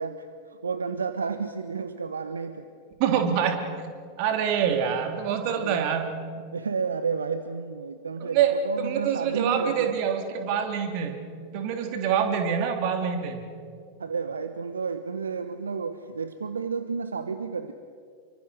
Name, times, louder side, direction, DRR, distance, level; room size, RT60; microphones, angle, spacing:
voice 1, 0.0-2.7 5.6-5.8 6.5-9.9 14.0-17.7, right 5 dB, 75° right, 10 dB, 1.0 m, -31 dB
voice 2, 3.0-3.6 4.2-6.1 8.2-11.2 11.5-13.5, right 7 dB, 45° right, 5 dB, 3.3 m, -25 dB
29.0 x 24.0 x 6.6 m, 2.2 s
figure-of-eight pair, 90°, 0 cm